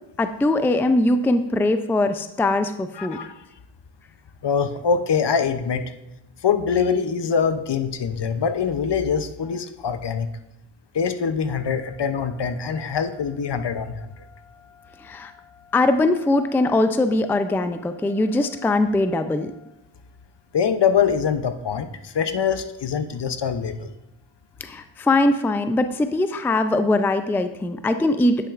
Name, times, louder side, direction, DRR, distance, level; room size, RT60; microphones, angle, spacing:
voice 1, 0.2-3.2 15.0-15.3 15.7-19.5 24.6-28.5, left 2 dB, 5° left, 9 dB, 0.4 m, -21 dB
voice 2, 2.9-3.4 4.4-5.8 6.4-10.3 10.9-13.9 20.5-23.9, left 6 dB, 60° left, 9 dB, 0.7 m, -23 dB
10.0 x 5.8 x 2.5 m, 0.86 s
cardioid pair, 45°, 48 cm